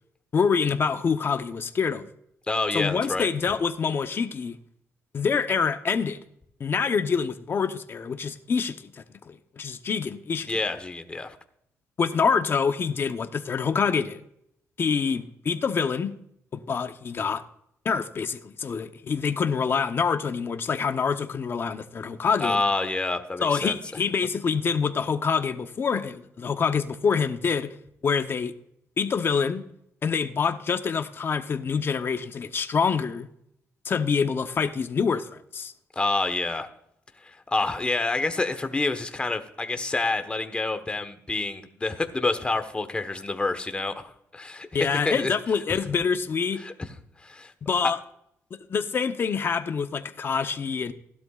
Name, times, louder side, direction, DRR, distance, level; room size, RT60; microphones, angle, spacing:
voice 1, 0.3-2.1 2.7-4.6 5.1-6.2 6.6-8.9 9.3-10.6 12.0-14.2 14.8-16.1 16.5-17.4 17.8-22.6 23.4-27.7 28.0-28.5 29.0-29.6 30.0-33.3 33.8-35.7 44.7-46.6 47.6-48.0 48.7-50.9, left 6 dB, 40° left, 1.0 m, -26 dB
voice 2, 2.5-3.3 10.5-11.4 22.4-23.7 35.9-36.7 37.2-45.3 46.6-46.7 47.2-47.5 47.8-47.9, left 3 dB, 20° left, 1.2 m, -28 dB
16.5 x 12.0 x 2.5 m
cardioid pair, 115°, 6 cm